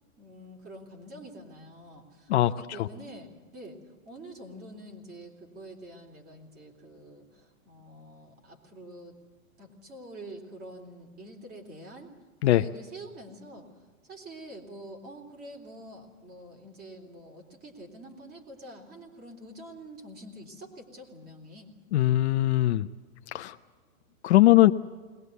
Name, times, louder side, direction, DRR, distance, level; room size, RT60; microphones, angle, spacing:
voice 1, 0.2-3.8 4.0-9.1 9.6-12.1 12.4-13.7 14.0-21.7, right 1 dB, 20° right, 2 dB, 3.6 m, -46 dB
voice 2, 21.9-22.9 23.3-23.6 24.2-24.7, left 15 dB, 50° left, 10 dB, 0.6 m, -20 dB
21.0 x 20.0 x 8.1 m, 1.4 s
hypercardioid pair, 145°, 42 cm